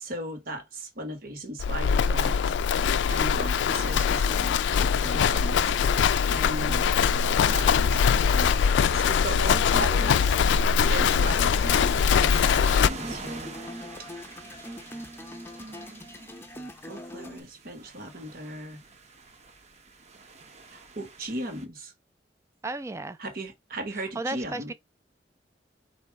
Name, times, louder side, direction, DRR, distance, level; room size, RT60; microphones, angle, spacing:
voice 1, 0.0-2.7 3.1-5.9 6.3-6.8 7.5-8.7 8.9-10.4 10.8-13.5 15.6-16.4 16.9-18.8 20.7-21.9 23.2-24.7, right 1 dB, 55° right, 1.3 m, -37 dB
Livestock farm animals working animals, 1.6-12.9, left 7 dB, 85° left, 0.3 m, -22 dB
sound 1, 3.4-17.4, equal, 15° left, 0.7 m, -42 dB
sound 2, 5.7-21.6, right 3 dB, 40° right, 0.8 m, -46 dB
voice 2, 22.6-23.2 23.9-24.7, right 2 dB, 15° right, 0.4 m, -34 dB
4.1 x 2.6 x 4.6 m
head